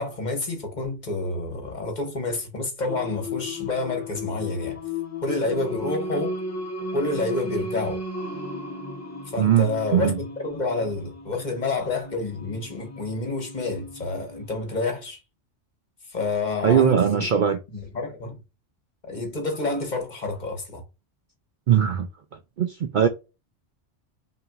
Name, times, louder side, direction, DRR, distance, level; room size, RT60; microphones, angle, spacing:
voice 1, 0.0-4.8 5.2-6.4 6.9-8.0 9.3-15.2 16.1-17.3 17.7-18.4 19.0-20.8, left 2 dB, 40° left, 1.1 m, -29 dB
Singing, 2.9-14.6, left 2 dB, 20° left, 0.5 m, -35 dB
voice 2, 9.4-10.2 16.6-17.6 21.7-22.1 22.6-23.1, right 9 dB, 60° right, 0.5 m, -20 dB
5.6 x 2.7 x 2.4 m
omnidirectional pair, 1.2 m